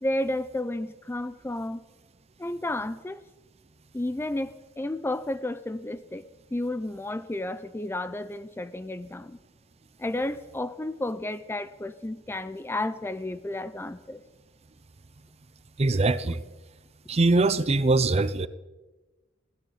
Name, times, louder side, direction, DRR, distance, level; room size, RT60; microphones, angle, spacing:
voice 1, 0.0-1.8 2.4-3.2 3.9-6.2 6.5-9.4 10.0-14.2, left 1 dB, 10° left, 13 dB, 0.4 m, -32 dB
voice 2, 15.8-16.4 17.1-18.5, right 3 dB, 35° right, 15 dB, 0.6 m, -22 dB
21.0 x 15.5 x 4.0 m, 1.2 s
head